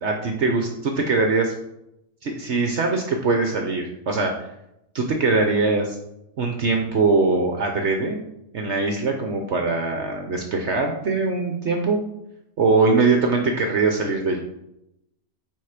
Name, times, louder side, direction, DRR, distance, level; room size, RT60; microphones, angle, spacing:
voice 1, 0.0-1.5 2.2-4.3 4.9-6.0 6.4-8.2 8.5-12.1 12.6-14.4, right 3 dB, 55° right, 3 dB, 1.1 m, -22 dB
9.0 x 3.9 x 5.0 m, 0.84 s
omnidirectional pair, 1.5 m